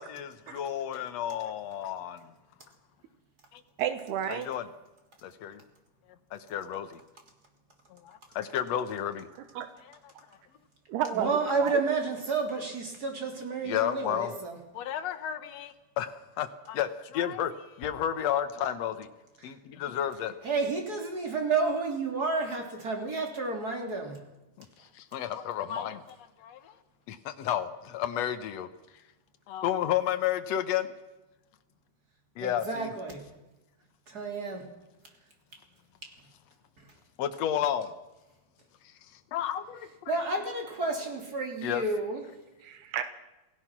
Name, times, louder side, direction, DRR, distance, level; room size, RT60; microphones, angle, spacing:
voice 1, 0.0-2.3 3.5-3.6 4.3-4.7 5.2-5.6 6.3-7.0 7.9-9.3 9.9-10.0 13.6-14.3 14.7-19.1 19.4-20.3 24.9-26.7 27.1-28.7 29.5-30.9 32.4-32.9 37.2-37.9 39.3-40.1 41.6-41.8, left 10 dB, 70° left, 9 dB, 1.6 m, -32 dB
voice 2, 3.8-4.5 9.6-9.7 10.9-11.7 42.6-43.0, right 10 dB, 85° right, 9 dB, 3.3 m, -31 dB
voice 3, 11.1-14.6 19.4-19.5 20.4-24.2 32.4-33.2 34.1-34.7 36.0-36.1 36.8-36.9 40.1-42.2, right 3 dB, 25° right, 2 dB, 3.2 m, -31 dB
27.5 x 18.0 x 6.1 m, 1.0 s
omnidirectional pair, 4.6 m